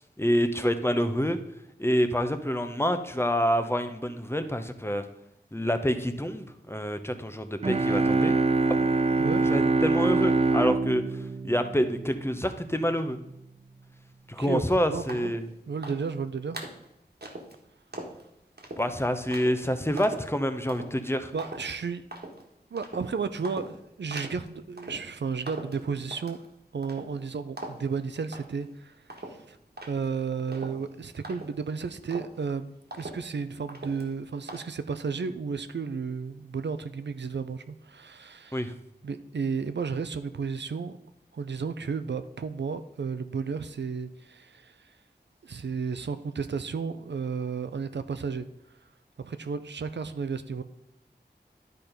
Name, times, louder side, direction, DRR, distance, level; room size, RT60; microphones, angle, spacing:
voice 1, 0.2-1.4 1.8-5.0 5.5-8.4 9.5-11.0 11.4-13.2 14.3-15.5 18.8-21.3 38.5-38.7, equal, 15° left, 8 dB, 0.8 m, -27 dB
sound 1, 7.6-12.3, right 3 dB, 35° right, 0.5 m, -24 dB
voice 2, 14.9-15.3 15.7-16.6 21.3-22.0 22.7-26.4 26.7-28.9 29.3-29.6 29.9-38.7 39.0-41.0 41.3-44.8 45.4-48.5 49.2-50.6, right 5 dB, 85° right, 11 dB, 0.5 m, -33 dB
sound 2, 15.1-15.4 15.8-16.2 16.5-16.8 17.2-17.5 17.9-18.2 18.6-18.9 19.3-19.6 20.0-20.3 20.7-20.9 21.4-21.8 22.1-22.4 22.8-23.1 23.4-23.8 24.1-24.5 24.8-25.1 25.5-26.5 26.8-27.3 27.6-27.9 28.3-28.7 29.1-31.8 32.1-32.5 32.9-33.4 33.7-34.1 34.5-34.6, right 2 dB, 65° right, 1.5 m, -41 dB
10.5 x 4.5 x 5.1 m, 0.85 s
wide cardioid pair, 45°, 18 cm